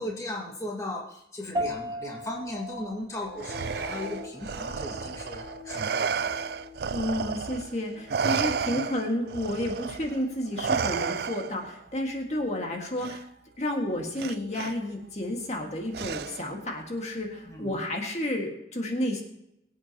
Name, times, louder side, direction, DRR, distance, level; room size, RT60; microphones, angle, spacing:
voice 1, 0.0-6.5 6.8-6.9 8.7-8.8 17.5-17.7, left 1 dB, 20° left, -2 dB, 1.8 m, -37 dB
sound 1, 1.5-11.1, equal, 25° right, 1.8 m, -40 dB
sound 2, 3.1-10.1, left 4 dB, 80° left, 4.3 m, -45 dB
Respiratory sounds, 3.4-7.7 8.1-11.7 13.0-13.2 14.2-14.7 15.9-16.6, right 6 dB, 60° right, 0.4 m, -32 dB
voice 2, 6.9-13.3 13.6-19.2, left 1 dB, 40° left, 1 dB, 1.8 m, -31 dB
23.5 x 8.5 x 2.9 m, 0.80 s
head